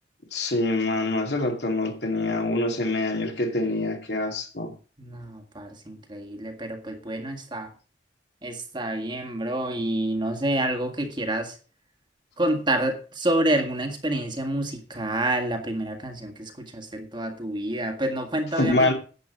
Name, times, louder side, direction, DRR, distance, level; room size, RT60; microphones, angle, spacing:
voice 1, 0.3-4.7 18.6-18.9, left 2 dB, 65° left, 2.6 m, -25 dB
voice 2, 5.0-7.7 8.4-11.6 12.4-18.9, right 1 dB, 25° right, 1.7 m, -28 dB
11.0 x 8.4 x 5.1 m
head